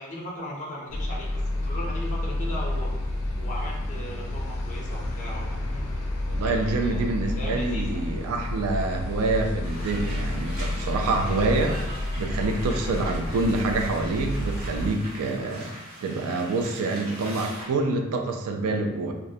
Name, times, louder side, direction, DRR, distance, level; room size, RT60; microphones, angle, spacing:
voice 1, 0.0-2.9 3.4-5.8 6.4-8.0, left 1 dB, 35° left, -3 dB, 0.4 m, -38 dB
sound 1, 0.9-14.9, left 1 dB, 90° left, 0.4 m, -30 dB
voice 2, 6.3-15.7 16.0-19.1, right 3 dB, 70° right, 3 dB, 0.3 m, -27 dB
sound 2, 9.6-17.6, equal, 85° right, 1.0 m, -41 dB
2.3 x 2.0 x 2.6 m, 1.0 s
head